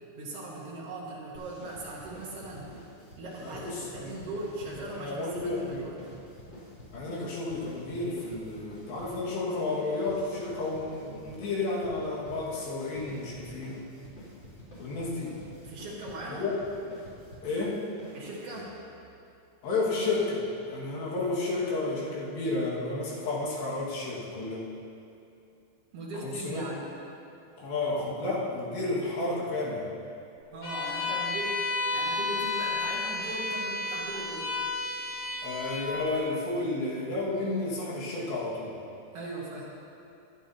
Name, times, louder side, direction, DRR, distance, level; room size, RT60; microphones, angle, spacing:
voice 1, 0.2-2.7 3.2-5.9 15.6-16.4 18.1-18.7 25.9-26.9 30.5-34.5 39.1-39.7, right 2 dB, 85° right, -5 dB, 1.3 m, -39 dB
sound 1, 1.3-19.1, left 1 dB, 30° left, 3.7 m, -48 dB
voice 2, 3.4-4.1 5.0-5.9 6.9-13.8 14.8-15.4 16.3-16.5 17.4-17.8 19.6-24.6 26.2-26.7 27.6-29.9 35.4-38.8, left 2 dB, 75° left, -6 dB, 4.0 m, -31 dB
Bowed string instrument, 30.6-35.9, left 3 dB, 50° left, 2.8 m, -32 dB
23.0 x 9.1 x 2.8 m, 2.6 s
omnidirectional pair, 5.1 m